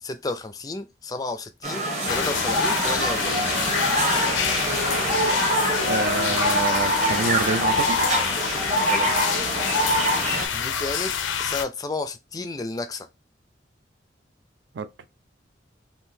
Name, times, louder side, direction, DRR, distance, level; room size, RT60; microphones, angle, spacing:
voice 1, 0.0-3.5 8.8-9.1 10.5-11.1 11.4-13.1, left 3 dB, 20° left, 0.3 m, -32 dB
sound 1, 1.6-10.5, right 1 dB, 35° right, 1.0 m, -24 dB
sound 2, 2.1-11.6, left 7 dB, 90° left, 0.5 m, -27 dB
voice 2, 5.8-8.0 14.7-15.0, right 3 dB, 70° right, 0.4 m, -27 dB
3.7 x 2.5 x 2.7 m
head